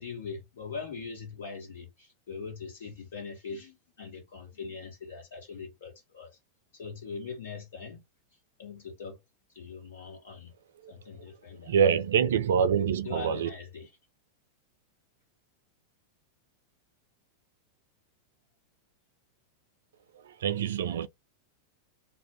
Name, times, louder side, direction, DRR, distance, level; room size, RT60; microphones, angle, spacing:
voice 1, 0.0-6.4 6.7-8.0 8.6-9.2 9.5-10.5 10.9-12.0 13.0-13.9, left 5 dB, 60° left, 1.5 m, -41 dB
voice 2, 11.7-13.5 20.1-21.1, right 7 dB, 60° right, 0.4 m, -26 dB
2.5 x 2.5 x 3.2 m
figure-of-eight pair, 90°, 0 cm